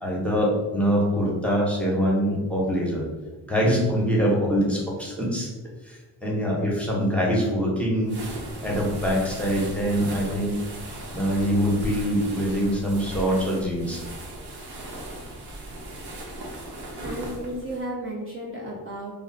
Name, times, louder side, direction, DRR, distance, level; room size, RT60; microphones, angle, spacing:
voice 1, 0.0-3.1 3.5-5.5 5.8-8.2 8.6-10.6 11.1-14.0, equal, 5° left, -4 dB, 0.9 m, -24 dB
sound 1, 8.0-17.8, right 1 dB, 70° right, 0.8 m, -37 dB
voice 2, 17.0-19.2, right 1 dB, 30° right, -4 dB, 0.6 m, -33 dB
2.4 x 2.0 x 3.9 m, 1.2 s
cardioid pair, 70°, 41 cm